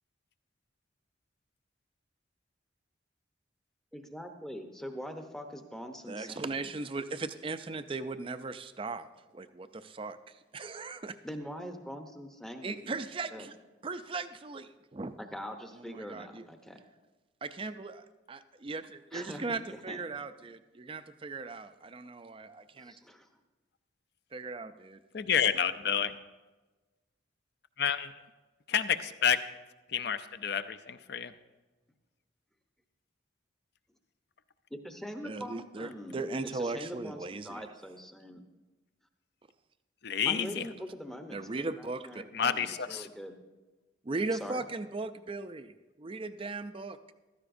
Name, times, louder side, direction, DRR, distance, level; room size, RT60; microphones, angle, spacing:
voice 1, 3.9-6.7 11.2-12.9 13.3-13.5 15.2-16.8 19.1-20.0 22.8-23.3 34.8-36.2 36.5-38.4 40.3-43.3 44.3-44.6, equal, ahead, 5 dB, 0.7 m, -43 dB
voice 2, 6.1-9.1 9.3-11.2 12.6-13.5 13.8-15.2 15.7-16.5 17.4-22.9 24.3-25.0 35.2-37.7 41.3-42.2 44.0-45.7 46.0-47.1, right 3 dB, 25° right, 11 dB, 0.4 m, -38 dB
voice 3, 25.1-26.2 27.8-28.1 28.7-29.4 29.9-31.3 40.0-40.7 42.3-43.1, left 8 dB, 55° left, 11 dB, 0.5 m, -29 dB
15.0 x 13.5 x 2.6 m, 1.2 s
head